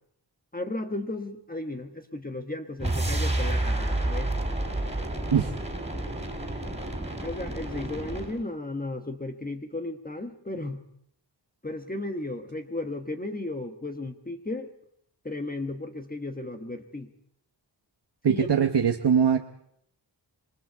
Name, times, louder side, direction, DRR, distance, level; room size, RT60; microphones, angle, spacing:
voice 1, 0.5-4.3 7.2-10.8 11.6-14.7 15.2-17.1 18.2-18.5, left 2 dB, 20° left, 5 dB, 1.3 m, -34 dB
sound 1, 2.8-8.4, right 1 dB, 15° right, 3.6 m, -30 dB
voice 2, 18.2-19.5, right 7 dB, 65° right, 5 dB, 1.1 m, -22 dB
27.0 x 22.0 x 4.7 m, 0.72 s
wide cardioid pair, 105°, 44 cm